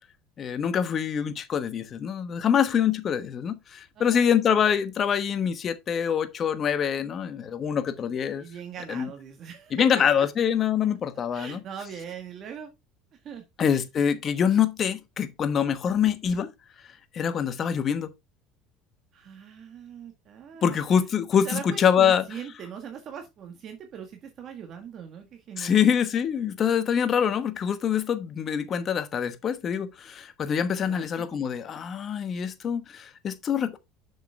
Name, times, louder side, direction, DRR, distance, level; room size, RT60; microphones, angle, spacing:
voice 1, 0.4-8.4 8.9-9.1 9.7-11.6 13.6-16.5 17.1-18.1 20.6-22.2 25.6-33.8, left 8 dB, 40° left, 1.1 m, -25 dB
voice 2, 3.9-4.3 8.4-10.3 11.3-12.7 13.1-13.4 13.7-13.8 19.1-20.8 21.4-26.0 30.8-31.2 31.7-31.8, right 8 dB, 45° right, 1.5 m, -41 dB
7.0 x 6.1 x 3.3 m
supercardioid pair, 105°, 0 cm